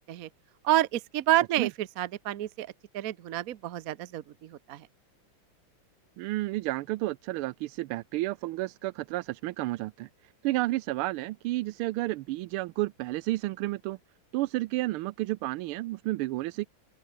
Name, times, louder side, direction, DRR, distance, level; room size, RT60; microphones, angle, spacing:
voice 1, 0.6-2.7 2.9-4.2 4.5-4.8, right 13 dB, 60° right, 0.9 m, -28 dB
voice 2, 6.2-10.1 10.4-14.0 14.3-16.7, right 18 dB, 90° right, 1.5 m, -31 dB
open air
omnidirectional pair, 2.3 m